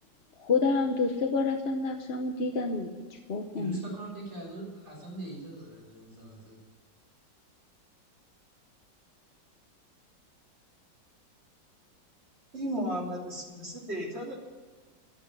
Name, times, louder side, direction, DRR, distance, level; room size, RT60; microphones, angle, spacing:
voice 1, 0.4-3.8, left 4 dB, 45° left, 4 dB, 0.9 m, -29 dB
voice 2, 3.5-6.6, right 2 dB, 65° right, -5 dB, 7.0 m, -41 dB
voice 3, 12.5-14.3, equal, 35° right, -2 dB, 3.5 m, -34 dB
11.5 x 9.8 x 9.5 m, 1.4 s
omnidirectional pair, 2.0 m